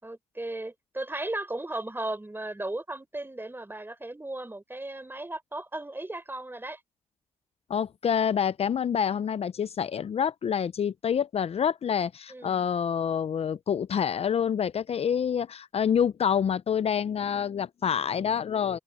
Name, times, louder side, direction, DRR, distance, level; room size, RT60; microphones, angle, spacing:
voice 1, 0.0-6.8 12.3-12.6, right 2 dB, 20° right, 4.9 m, -36 dB
voice 2, 7.7-18.8, left 8 dB, 60° left, 0.5 m, -27 dB
open air
supercardioid pair, 50°, 12 cm